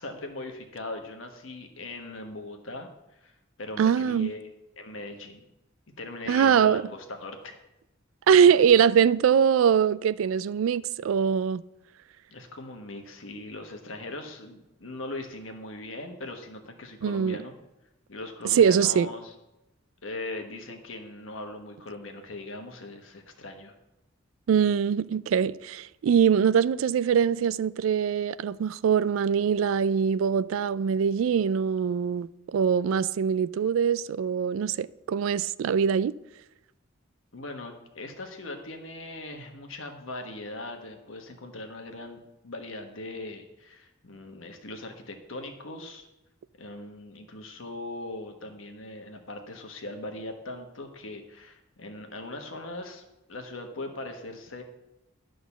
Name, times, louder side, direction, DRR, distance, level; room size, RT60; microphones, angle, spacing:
voice 1, 0.0-4.4 4.8-5.5 6.0-7.6 12.3-17.5 18.1-19.3 20.0-23.7 37.3-46.1 46.6-54.6, left 2 dB, 75° left, 1.3 m, -40 dB
voice 2, 3.8-4.3 6.3-6.9 8.3-11.6 17.0-17.4 18.5-19.1 24.5-36.1, right 7 dB, 80° right, 0.3 m, -23 dB
11.5 x 3.9 x 7.0 m
head